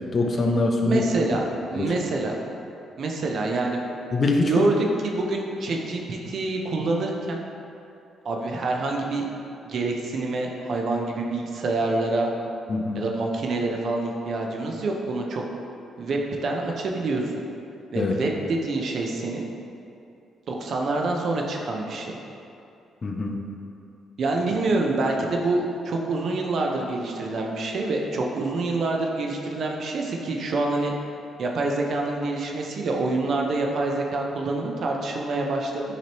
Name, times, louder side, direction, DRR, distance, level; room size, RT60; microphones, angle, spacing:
voice 1, 0.0-1.0 1.8-1.9 4.1-4.5 12.7-13.0 17.9-18.1 23.0-23.4, left 2 dB, 35° left, 2 dB, 0.5 m, -23 dB
voice 2, 0.8-2.4 3.0-3.8 4.5-7.4 8.2-9.3 9.6-12.3 12.9-15.4 16.0-17.2 17.9-19.5 20.5-22.2 24.2-30.9 31.4-35.8, right 2 dB, 60° right, 0 dB, 0.5 m, -26 dB
6.0 x 3.0 x 2.9 m, 2.7 s
cardioid pair, 90°, 0 cm